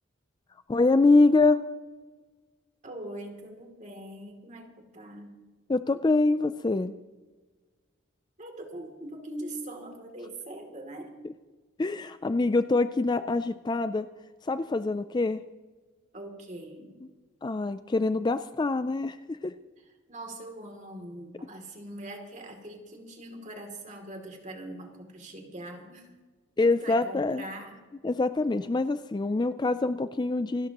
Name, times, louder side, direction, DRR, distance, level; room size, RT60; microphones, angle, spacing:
voice 1, 0.7-1.6 5.7-6.9 11.8-14.1 14.4-15.4 17.4-19.5 26.6-27.4 28.0-30.7, left 3 dB, 20° left, 12 dB, 0.3 m, -25 dB
voice 2, 2.8-5.4 8.4-11.1 16.1-17.0 19.8-26.1 26.6-27.8, right 1 dB, 35° right, 2 dB, 2.7 m, -42 dB
28.0 x 12.5 x 3.0 m, 1.3 s
head